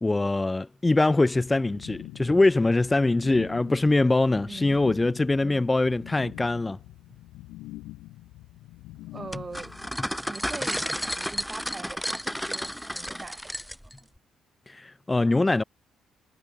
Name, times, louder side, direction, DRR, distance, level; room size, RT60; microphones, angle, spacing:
voice 1, 0.0-6.8 14.7-15.6, left 2 dB, 20° left, 0.4 m, -23 dB
sound 1, 1.3-9.9, left 18 dB, 80° left, 0.6 m, -45 dB
voice 2, 4.5-4.8 5.4-5.7 9.1-9.7 10.3-13.9, right 4 dB, 30° right, 1.3 m, -42 dB
sound 2, 9.3-14.0, equal, ahead, 1.3 m, -32 dB
supercardioid pair, 55°, 0 cm